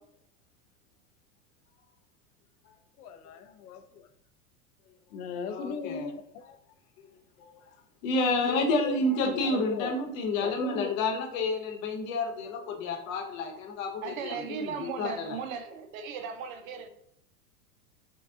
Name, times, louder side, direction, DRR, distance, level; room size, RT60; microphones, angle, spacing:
voice 1, 3.0-4.1 5.1-6.6 8.4-9.9 10.4-10.9, left 6 dB, 75° left, 8 dB, 0.6 m, -37 dB
voice 2, 5.5-6.1 7.4-7.5 8.0-15.4, left 2 dB, 60° left, 1 dB, 0.9 m, -30 dB
voice 3, 14.0-16.9, right 6 dB, 65° right, 8 dB, 0.6 m, -37 dB
3.6 x 2.3 x 2.3 m, 0.74 s
hypercardioid pair, 105°, 46 cm